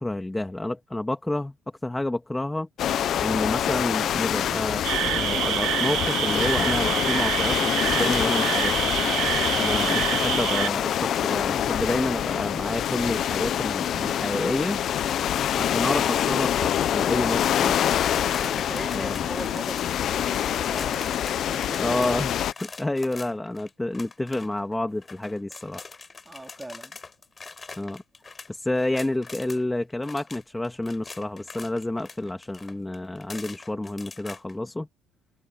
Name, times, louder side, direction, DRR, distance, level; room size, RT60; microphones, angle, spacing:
voice 1, 0.0-1.5 1.8-2.7 3.2-8.9 9.6-14.8 15.6-18.0 18.9-19.2 21.8-25.8 27.8-28.0 28.5-34.9, left 1 dB, 10° left, 2.4 m, -29 dB
sound 1, 2.8-22.5, left 10 dB, 60° left, 1.0 m, -25 dB
sound 2, 4.8-10.7, right 15 dB, 80° right, 1.6 m, -27 dB
sound 3, 17.4-29.6 29.9-34.5, left 4 dB, 30° left, 4.8 m, -43 dB
voice 2, 18.3-22.1 26.3-27.0, right 2 dB, 15° right, 3.6 m, -40 dB
cardioid pair, 95°, 0 cm